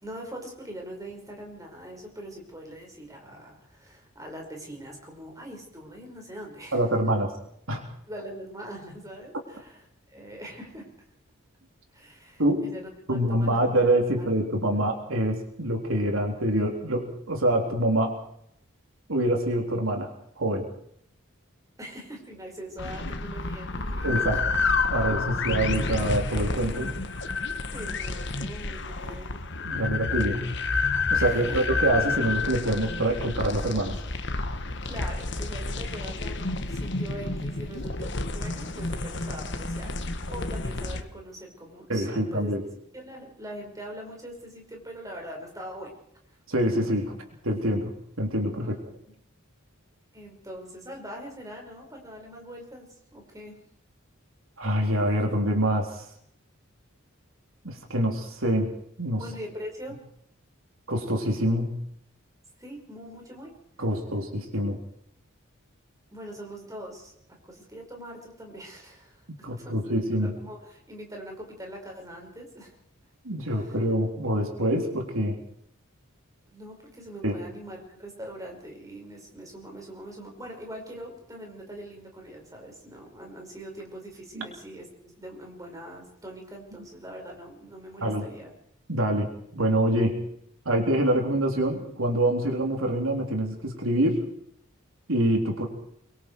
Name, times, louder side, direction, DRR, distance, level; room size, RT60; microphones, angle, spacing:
voice 1, 0.0-6.8 8.1-9.8 10.1-10.9 11.9-13.6 14.1-14.3 21.8-24.4 24.9-25.0 27.7-29.5 31.1-31.6 34.8-39.9 40.3-42.5 42.9-45.9 48.6-48.8 49.1-49.2 50.1-52.9 53.1-53.6 59.2-60.0 62.6-63.5 66.1-67.1 67.4-72.8 73.4-73.8 76.5-88.5, right 1 dB, 15° right, 1 dB, 5.2 m, -42 dB
voice 2, 6.7-7.3 7.7-7.8 12.4-12.7 13.1-18.1 19.1-20.1 20.4-20.7 24.0-24.4 24.9-26.9 29.6-30.4 31.1-34.0 41.9-42.6 46.5-47.9 48.2-48.8 54.6-56.0 57.6-58.7 59.0-59.2 60.9-61.7 63.8-64.8 69.4-70.3 73.2-75.4 77.2-77.4 84.4-84.5 88.0-88.3 88.9-90.2 90.7-94.2 95.1-95.7, right 1 dB, 75° right, 2 dB, 3.7 m, -25 dB
sound 1, 22.8-41.0, left 3 dB, 55° left, 1.5 m, -30 dB
25.0 x 23.5 x 4.7 m, 0.69 s
head